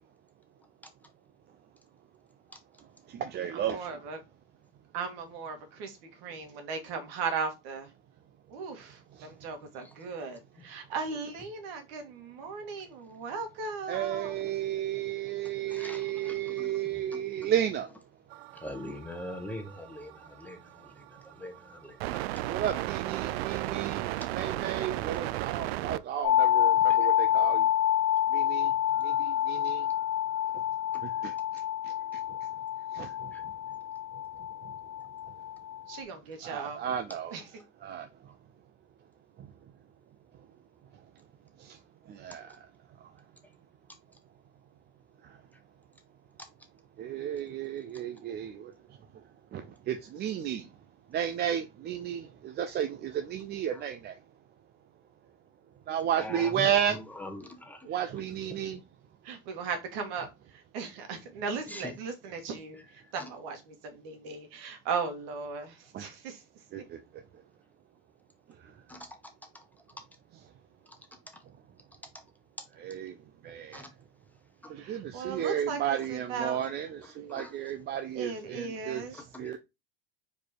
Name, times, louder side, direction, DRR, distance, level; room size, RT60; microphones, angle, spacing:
voice 1, 2.8-4.0 9.1-9.4 13.9-18.0 22.5-27.7 28.3-29.9 30.5-30.6 31.0-32.5 32.9-33.5 34.1-34.8 35.3-35.4 36.4-37.3 37.8-38.4 39.4-39.5 40.9-41.0 41.6-42.7 43.0-43.2 45.2-45.4 47.0-50.7 51.1-54.2 55.9-57.0 57.8-58.8 65.9-66.1 66.7-67.2 68.5-68.8 70.3-70.4 71.4-71.5 72.7-73.9 74.7-79.6, right 10 dB, 35° right, 0.7 m, -34 dB
voice 2, 3.5-4.2 4.9-7.9 8.5-14.4 35.9-36.8 37.3-37.6 57.9-58.1 59.2-66.8 74.7-76.6 78.1-79.2, right 5 dB, 70° right, 2.1 m, -37 dB
voice 3, 15.7-16.7 17.1-17.2 18.5-22.2 27.0-27.1 30.9-31.0 33.3-33.4 56.2-57.9 61.7-61.9 63.2-63.3 68.9-69.1 73.7-73.9 74.6-74.7 77.3-77.5 79.1-79.5, left 1 dB, 5° left, 1.1 m, -42 dB
sound 1, 18.3-26.0 29.1-29.2, right 16 dB, 85° right, 0.5 m, -35 dB
sound 2, 26.2-36.0, left 11 dB, 55° left, 1.6 m, -28 dB
4.8 x 4.7 x 4.4 m
supercardioid pair, 130°, 30 cm